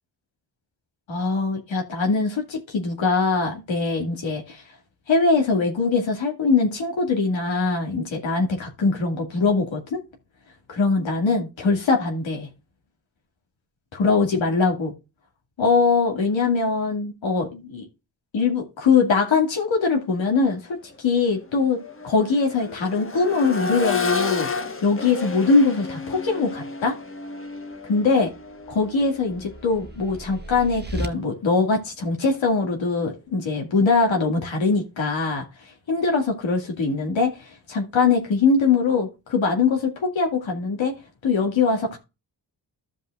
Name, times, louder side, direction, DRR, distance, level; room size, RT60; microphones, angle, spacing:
voice 1, 1.1-4.6 5.1-10.0 10.7-12.5 14.0-14.9 15.6-17.9 18.3-24.5 24.8-26.9 27.9-28.3 28.7-35.4 35.9-40.9 41.2-42.0, left 4 dB, 80° left, 2.2 m, -22 dB
Accelerating revving vroom, 20.4-20.5 20.8-30.7 32.4-32.5, left 5 dB, 30° left, 1.2 m, -32 dB
sound 1, 28.3-31.1, right 1 dB, 20° right, 1.2 m, -36 dB
14.5 x 5.6 x 2.4 m
wide cardioid pair, 100°, 45 cm